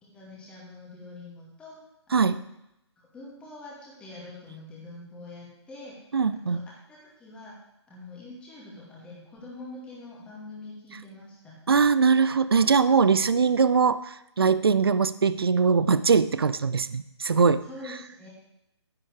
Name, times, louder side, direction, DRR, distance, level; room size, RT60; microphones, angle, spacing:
voice 1, 0.0-1.8 2.1-2.4 3.0-5.9 6.3-6.6 6.9-7.6 7.9-11.5 17.6-18.3, left 2 dB, 5° left, -5 dB, 2.4 m, -44 dB
voice 2, 6.1-6.6 11.7-17.6, right 5 dB, 55° right, 15 dB, 0.5 m, -22 dB
11.5 x 10.5 x 3.4 m, 0.85 s
figure-of-eight pair, 140°, 15 cm